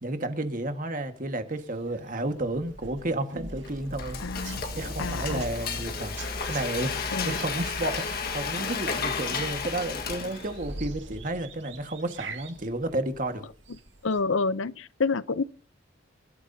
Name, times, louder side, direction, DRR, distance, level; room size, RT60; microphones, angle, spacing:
voice 1, 0.0-4.2 4.7-6.1 6.5-6.9 7.2-13.4, right 2 dB, 40° right, 1.6 m, -32 dB
sound 1, 1.5-14.2, right 2 dB, 60° right, 2.2 m, -44 dB
Frying (food), 3.6-10.7, left 5 dB, 50° left, 1.6 m, -32 dB
voice 2, 4.2-4.6 5.0-5.5 7.1-7.4 14.0-15.4, left 4 dB, 75° left, 0.6 m, -28 dB
26.5 x 13.0 x 2.8 m
head